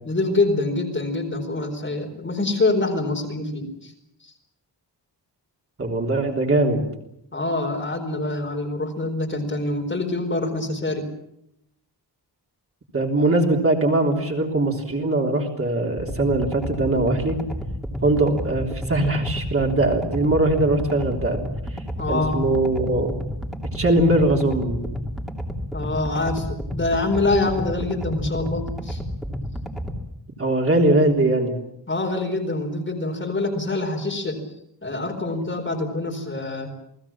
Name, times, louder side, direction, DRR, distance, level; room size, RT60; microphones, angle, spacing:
voice 1, 0.0-3.9 4.2-4.3 7.3-11.1 22.0-22.5 25.7-29.0 31.9-34.4 34.8-36.7, left 2 dB, 25° left, 2 dB, 4.4 m, -25 dB
voice 2, 5.8-6.8 12.9-17.4 18.0-21.4 22.1-23.1 23.7-24.8 30.4-31.5, right 2 dB, 30° right, 0 dB, 3.6 m, -21 dB
sound 1, 16.0-30.0, equal, ahead, 2.8 m, -31 dB
29.0 x 19.5 x 7.3 m, 0.78 s
wide cardioid pair, 170°, 42 cm